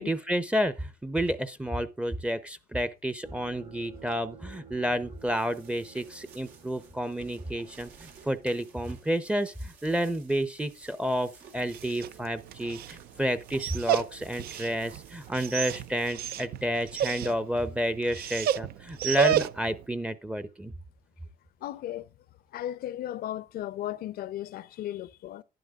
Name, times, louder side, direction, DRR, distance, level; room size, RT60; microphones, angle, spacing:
voice 1, 0.0-20.7, equal, 5° right, 0.6 m, -30 dB
sound 1, 3.2-9.5, right 7 dB, 45° right, 1.7 m, -53 dB
sound 2, 5.0-17.5, right 6 dB, 85° right, 2.7 m, -56 dB
Dog, 11.6-19.8, right 11 dB, 65° right, 0.5 m, -32 dB
voice 2, 21.6-22.1 22.5-25.4, left 12 dB, 60° left, 0.6 m, -36 dB
11.5 x 10.0 x 2.4 m
cardioid pair, 110°, 17 cm